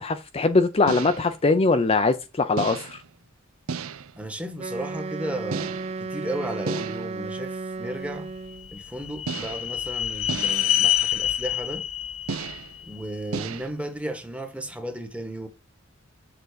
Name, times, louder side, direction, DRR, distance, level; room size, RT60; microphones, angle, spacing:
voice 1, 0.0-3.0, left 3 dB, 30° left, 0.5 m, -22 dB
sound 1, 0.9-1.4 2.6-3.1 3.7-4.2 5.5-6.1 6.7-7.2 9.3-9.8 10.3-10.8 12.3-12.8 13.3-13.7, right 5 dB, 85° right, 0.6 m, -33 dB
voice 2, 4.2-8.3 8.7-11.9 12.8-15.5, right 1 dB, 5° right, 1.2 m, -34 dB
Wind instrument woodwind instrument, 4.6-8.7, right 3 dB, 30° right, 0.3 m, -34 dB
sound 2, 8.3-13.5, left 12 dB, 90° left, 0.9 m, -27 dB
6.9 x 3.8 x 6.5 m
head